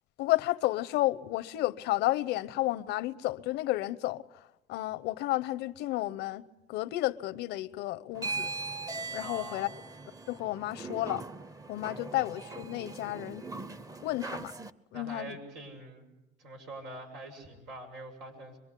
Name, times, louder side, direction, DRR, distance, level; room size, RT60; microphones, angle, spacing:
voice 1, 0.2-4.2 4.7-8.5 9.1-9.7 10.3-11.2 11.7-13.5 14.0-14.5 14.9-15.3, left 16 dB, 90° left, 0.8 m, -32 dB
sound 1, 8.1-14.7, right 3 dB, 20° right, 0.9 m, -40 dB
voice 2, 9.2-9.7 14.9-16.1 16.4-18.6, right 2 dB, 90° right, 6.9 m, -44 dB
25.0 x 23.0 x 8.4 m
cardioid pair, 110°, 17 cm